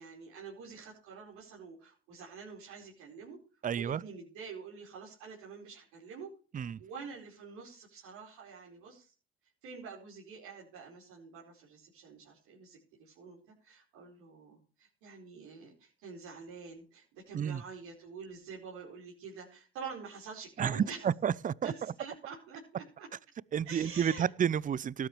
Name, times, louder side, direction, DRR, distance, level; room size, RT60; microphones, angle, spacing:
voice 1, 0.0-3.4 3.7-6.3 6.8-9.1 9.6-21.0 21.6-23.1 23.6-24.3, right 5 dB, 70° right, 4.8 m, -47 dB
voice 2, 3.6-4.0 6.5-6.8 17.3-17.6 20.6-21.7 23.5-25.1, right 8 dB, 30° right, 0.6 m, -30 dB
18.5 x 10.5 x 3.2 m
hypercardioid pair, 55°, 29 cm